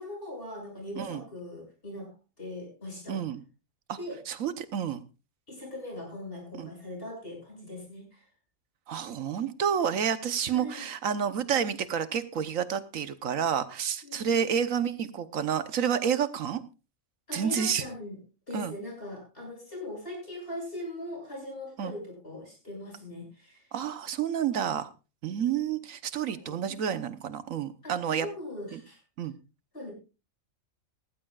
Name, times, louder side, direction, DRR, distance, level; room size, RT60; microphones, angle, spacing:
voice 1, 0.0-2.1 2.4-3.2 4.0-4.2 5.5-8.3 10.5-10.9 14.0-14.5 17.3-18.2 18.5-23.7 25.2-25.8 26.3-26.6 27.8-29.0 29.7-29.9, left 1 dB, 45° left, 0 dB, 7.5 m, -40 dB
voice 2, 3.1-3.4 4.3-5.0 6.6-6.7 8.9-16.6 17.3-17.8 18.5-18.7 21.8-21.9 23.7-24.9 25.2-28.3 28.7-28.8 29.2-29.3, right 8 dB, 80° right, 12 dB, 1.3 m, -29 dB
17.5 x 15.0 x 2.4 m, 0.31 s
omnidirectional pair, 1.4 m